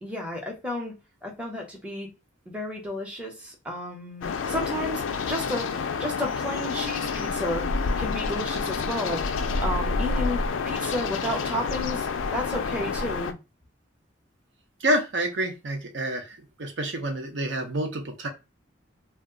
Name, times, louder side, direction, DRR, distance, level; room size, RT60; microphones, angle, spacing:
voice 1, 0.0-0.9 1.2-2.1 2.5-5.0 5.3-5.7 6.0-7.7 8.0-9.3 9.6-12.1 12.3-13.4, left 1 dB, 5° right, 0.7 m, -32 dB
sound 1, 4.2-13.3, left 4 dB, 90° left, 0.4 m, -28 dB
voice 2, 14.8-18.3, right 1 dB, 65° right, 0.7 m, -28 dB
2.3 x 2.1 x 3.6 m
head